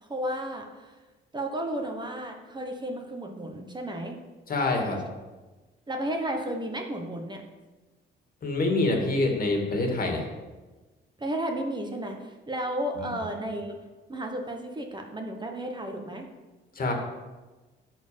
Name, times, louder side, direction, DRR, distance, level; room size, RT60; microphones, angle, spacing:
voice 1, 0.1-0.9 1.3-4.2 5.9-7.4 11.2-13.7 14.1-16.3, right 1 dB, 20° right, 3 dB, 1.2 m, -33 dB
voice 2, 4.5-5.0 8.4-10.3 13.0-13.1 16.8-16.9, left 2 dB, 45° left, 2 dB, 2.2 m, -26 dB
10.5 x 4.5 x 6.9 m, 1.2 s
cardioid pair, 90°, 20 cm